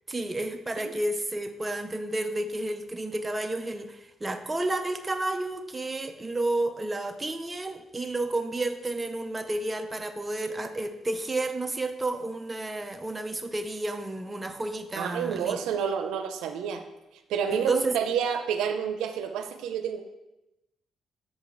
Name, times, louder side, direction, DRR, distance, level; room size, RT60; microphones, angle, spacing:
voice 1, 0.1-15.6 17.5-18.0, right 2 dB, 20° right, 6 dB, 0.6 m, -31 dB
voice 2, 15.0-16.8 17.3-20.0, right 7 dB, 90° right, 7 dB, 0.6 m, -29 dB
7.4 x 4.9 x 3.9 m, 0.95 s
cardioid pair, 90°, 0 cm